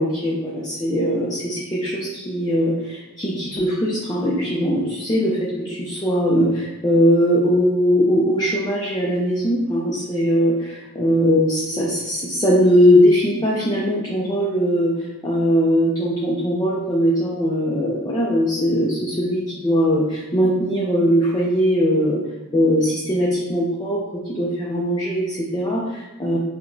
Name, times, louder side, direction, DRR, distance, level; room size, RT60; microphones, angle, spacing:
voice 1, 0.0-14.9 15.2-22.2 22.5-24.0 24.3-26.4, equal, 20° left, -5 dB, 0.4 m, -20 dB
4.6 x 2.1 x 2.6 m, 1.1 s
head